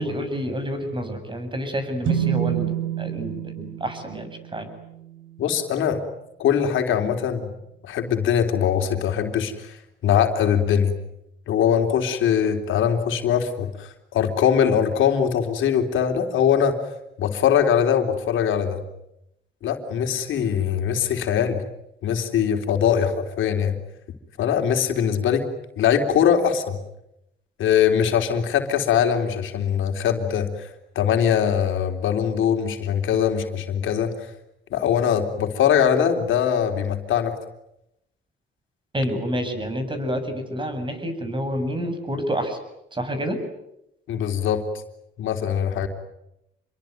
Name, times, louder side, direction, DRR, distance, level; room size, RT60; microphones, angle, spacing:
voice 1, 0.0-4.7 38.9-42.6 42.9-43.4, equal, 25° right, 8 dB, 7.6 m, -28 dB
sound 1, 2.0-5.6, right 11 dB, 70° right, 4.3 m, -28 dB
voice 2, 5.4-6.0 6.4-7.5 7.8-9.7 10.0-11.0 11.5-16.8 17.2-18.8 19.6-21.6 22.0-23.8 24.4-25.5 25.8-26.8 27.6-30.7 31.0-34.1 34.7-37.3 44.1-44.6 45.2-45.9, left 8 dB, 80° left, 5 dB, 3.6 m, -22 dB
27.5 x 22.5 x 9.4 m, 0.84 s
cardioid pair, 90°, 20 cm